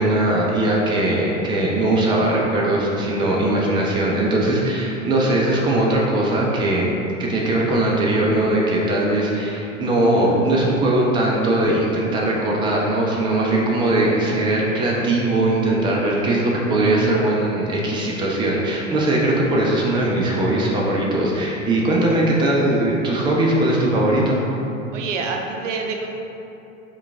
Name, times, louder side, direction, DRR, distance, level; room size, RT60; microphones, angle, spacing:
voice 1, 0.0-6.9 7.2-24.4, right 1 dB, 10° right, -3 dB, 0.5 m, -20 dB
voice 2, 24.9-26.1, right 4 dB, 70° right, 2 dB, 0.6 m, -27 dB
4.5 x 2.4 x 3.4 m, 2.8 s
figure-of-eight pair, 80°, 39 cm